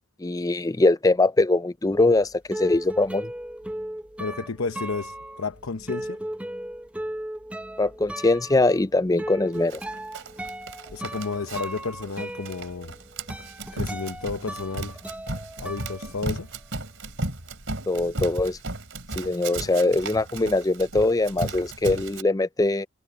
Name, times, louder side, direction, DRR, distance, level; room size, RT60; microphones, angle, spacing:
voice 1, 0.2-3.3 7.8-9.8 17.9-18.6 19.2-22.9, left 2 dB, 15° left, 0.5 m, -22 dB
sound 1, 1.9-16.8 17.0-18.5, right 1 dB, 5° right, 0.8 m, -37 dB
voice 2, 4.2-6.2 10.9-12.9 13.7-15.0 15.6-16.5, left 4 dB, 85° left, 0.8 m, -32 dB
Run, 9.7-22.2, right 2 dB, 65° right, 4.0 m, -35 dB
head